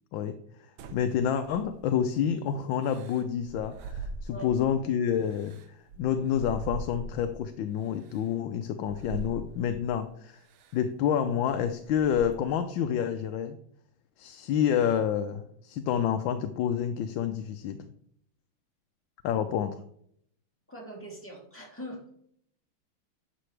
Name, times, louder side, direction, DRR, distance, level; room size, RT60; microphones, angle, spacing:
sound 1, 0.8-2.0 2.8-4.8 5.2-7.4 8.1-8.2 8.8-10.0 10.5-10.8 11.3-12.6, right 3 dB, 75° right, 1.5 m, -42 dB
voice 1, 0.9-10.4 10.7-13.6 14.2-17.9 19.2-19.8, left 8 dB, 70° left, 7 dB, 1.3 m, -28 dB
voice 2, 20.7-22.2, equal, 5° left, -3 dB, 2.7 m, -42 dB
11.5 x 6.8 x 3.3 m, 0.67 s
omnidirectional pair, 2.4 m